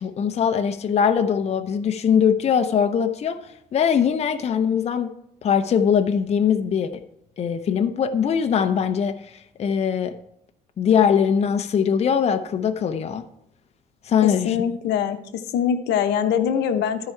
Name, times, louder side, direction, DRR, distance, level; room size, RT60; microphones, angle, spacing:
voice 1, 0.0-3.4 3.7-5.1 5.4-7.0 7.4-9.2 9.6-10.1 10.8-13.2 14.0-14.5, left 7 dB, 40° left, 7 dB, 0.7 m, -21 dB
voice 2, 14.2-17.1, left 8 dB, 80° left, 8 dB, 0.8 m, -23 dB
13.5 x 4.9 x 4.5 m, 0.74 s
cardioid pair, 110°, 17 cm